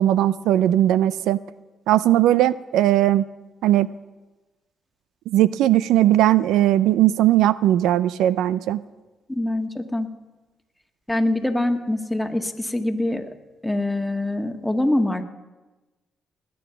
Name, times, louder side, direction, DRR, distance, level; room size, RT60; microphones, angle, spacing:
voice 1, 0.0-1.4 1.9-3.3 3.6-3.9 5.3-8.8, right 13 dB, 85° right, 17 dB, 0.4 m, -18 dB
voice 2, 9.3-10.1 11.1-13.3 13.6-15.2, left 1 dB, 10° left, 5 dB, 1.8 m, -24 dB
20.0 x 9.4 x 5.9 m, 1.2 s
supercardioid pair, 55°, 0 cm